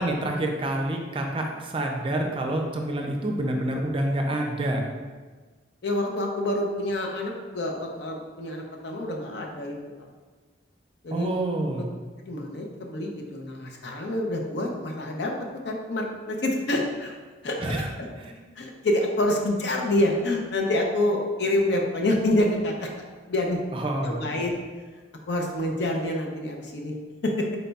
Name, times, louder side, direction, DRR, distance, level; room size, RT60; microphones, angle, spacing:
voice 1, 0.0-4.8 11.1-11.9 17.6-17.9 18.2-18.4 23.7-24.3, right 1 dB, 30° right, 2 dB, 0.5 m, -27 dB
voice 2, 5.8-9.8 11.0-11.3 12.2-15.3 15.6-17.2 17.4-17.6 18.6-22.9 23.3-23.6 24.0-24.6 25.3-26.9 27.2-27.5, left 1 dB, 70° left, 1 dB, 0.6 m, -27 dB
4.1 x 2.2 x 4.0 m, 1.4 s
head